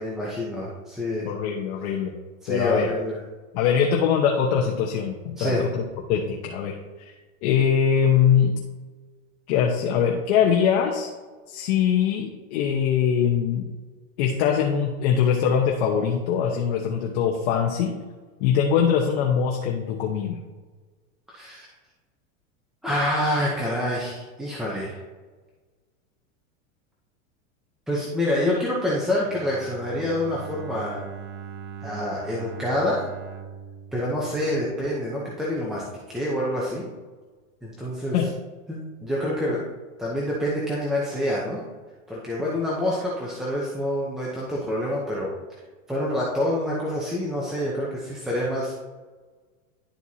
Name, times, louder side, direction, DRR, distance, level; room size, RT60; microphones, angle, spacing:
voice 1, 0.0-1.3 2.4-3.2 5.4-5.7 21.3-21.7 22.8-25.0 27.9-31.0 31.8-33.1 33.9-36.8 37.6-38.2 38.7-39.7 40.0-41.6 42.1-45.3 45.9-48.8, left 1 dB, ahead, -6 dB, 0.7 m, -27 dB
voice 2, 1.2-2.1 2.5-2.9 3.5-5.8 6.1-7.1 7.4-8.6 9.5-11.1 11.5-13.6 14.2-17.9 18.4-20.4 38.1-38.3, left 7 dB, 50° left, 0 dB, 1.0 m, -22 dB
Bowed string instrument, 29.2-35.1, right 7 dB, 65° right, 0.8 m, -40 dB
11.5 x 4.5 x 2.8 m, 1.3 s
supercardioid pair, 145°, 41 cm